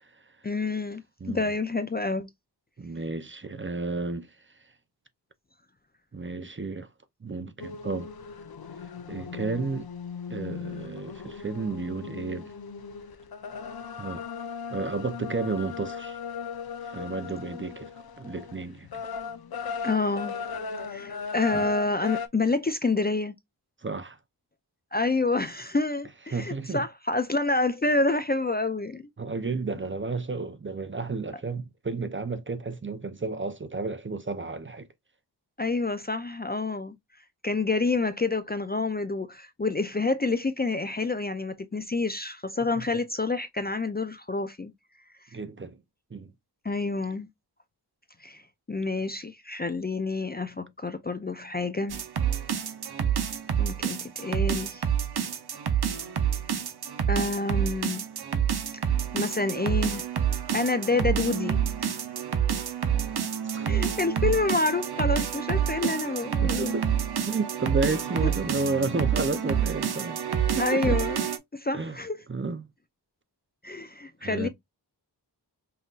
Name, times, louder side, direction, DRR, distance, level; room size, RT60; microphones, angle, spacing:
voice 1, 0.4-2.3 19.8-20.4 20.8-23.3 24.9-29.0 35.6-37.0 37.4-44.7 46.6-47.3 48.2-48.4 48.7-52.0 53.6-54.8 57.1-58.0 58.7-60.0 60.5-62.0 63.7-66.7 68.2-68.3 70.6-71.2 71.5-72.2 73.6-74.5, left 3 dB, 25° left, 0.4 m, -28 dB
voice 2, 2.8-4.3 6.1-6.9 7.2-8.1 9.1-9.9 10.3-12.5 14.0-14.2 14.7-16.2 16.9-18.9 21.5-21.7 23.8-24.2 26.3-26.8 29.2-34.9 42.8-42.9 45.3-45.8 46.1-46.3 63.4-63.7 66.6-66.9 67.3-70.2 70.5-71.0 71.7-72.0 72.3-72.7 74.2-74.5, right 3 dB, 30° right, 0.5 m, -32 dB
sound 1, 7.6-22.3, left 6 dB, 60° left, 0.7 m, -38 dB
sound 2, 51.9-71.4, right 8 dB, 65° right, 0.8 m, -28 dB
5.5 x 2.6 x 2.4 m
wide cardioid pair, 75°, 42 cm